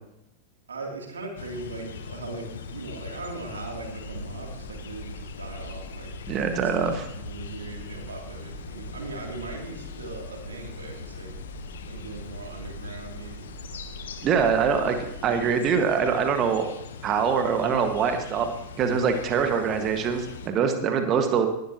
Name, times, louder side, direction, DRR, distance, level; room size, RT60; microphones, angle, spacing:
voice 1, 0.7-6.1 7.1-11.3 11.9-13.5, right 3 dB, 70° right, 0 dB, 2.9 m, -39 dB
sound 1, 1.4-20.5, left 5 dB, 60° left, 1.0 m, -41 dB
sound 2, 3.4-15.5, right 1 dB, 40° left, 6.4 m, -43 dB
voice 2, 6.3-7.1 14.2-16.7 17.0-18.5 18.8-21.5, right 6 dB, 30° right, 6 dB, 1.7 m, -24 dB
19.5 x 12.0 x 3.0 m, 0.84 s
figure-of-eight pair, 90°, 0 cm